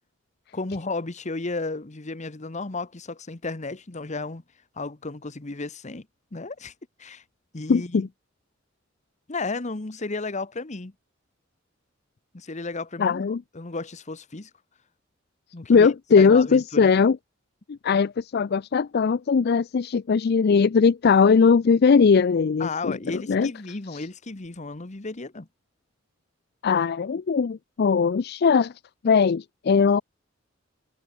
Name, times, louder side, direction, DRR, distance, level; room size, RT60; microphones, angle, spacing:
voice 1, 0.5-4.4 4.8-6.1 6.3-6.7 7.0-7.2 7.5-8.1 9.3-10.9 12.3-14.5 15.5-15.9 16.2-16.9 22.6-25.5, left 3 dB, 35° left, 1.1 m, -33 dB
voice 2, 7.7-8.1 13.0-13.4 15.7-17.2 17.7-23.5 23.9-24.0 26.6-28.7 29.0-30.0, left 5 dB, 55° left, 0.4 m, -20 dB
head